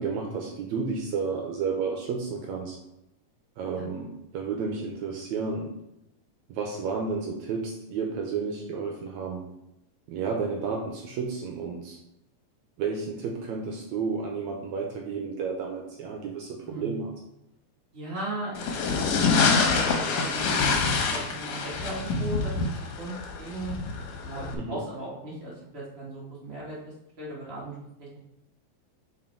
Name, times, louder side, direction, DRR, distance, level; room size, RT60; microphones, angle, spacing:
voice 1, 0.0-2.8 3.6-5.7 6.5-9.4 10.1-12.0 12.8-17.1 24.5-24.8, right 5 dB, 75° right, 1 dB, 1.9 m, -31 dB
voice 2, 16.6-17.0 17.9-26.8 27.2-28.2, right 2 dB, 40° right, -6 dB, 0.8 m, -38 dB
sound 1, 18.5-24.5, left 4 dB, 85° left, 2.7 m, -26 dB
6.4 x 4.2 x 4.5 m, 0.88 s
omnidirectional pair, 3.8 m